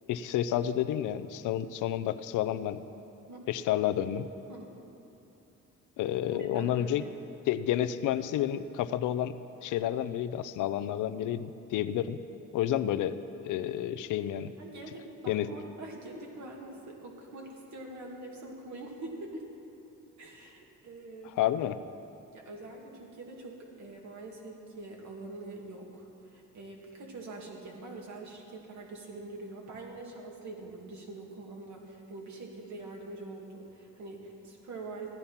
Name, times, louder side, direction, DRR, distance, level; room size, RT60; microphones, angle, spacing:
voice 1, 0.1-2.8 3.5-4.3 6.0-7.0 7.5-12.2 12.5-13.2 13.4-14.5 15.3-15.5 21.4-21.8, left 11 dB, 85° left, 12 dB, 0.6 m, -30 dB
voice 2, 6.3-7.1 14.6-19.4 20.2-21.3 22.3-35.1, right 2 dB, 70° right, -1 dB, 2.3 m, -44 dB
14.5 x 10.5 x 5.7 m, 2.9 s
cardioid pair, 90°, 30 cm